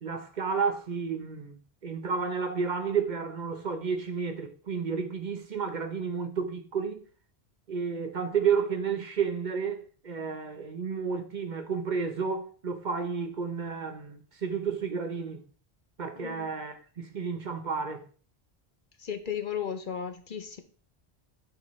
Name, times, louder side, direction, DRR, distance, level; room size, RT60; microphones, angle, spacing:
voice 1, 0.0-7.0 7.7-15.4 16.0-18.0, right 6 dB, 50° right, 0.9 m, -31 dB
voice 2, 16.2-16.5 19.0-20.6, left 8 dB, 55° left, 0.8 m, -35 dB
8.9 x 4.9 x 3.1 m
omnidirectional pair, 1.1 m